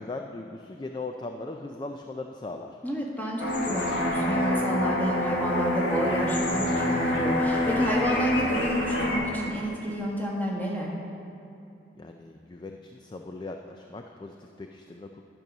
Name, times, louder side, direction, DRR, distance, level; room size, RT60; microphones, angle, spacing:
voice 1, 0.0-2.7 12.0-15.2, left 3 dB, 25° left, 4 dB, 0.3 m, -39 dB
voice 2, 2.8-10.9, equal, 10° left, -4 dB, 1.6 m, -29 dB
sound 1, 3.4-9.2, left 1 dB, 85° left, 1.5 m, -26 dB
12.0 x 5.3 x 6.1 m, 2.6 s
head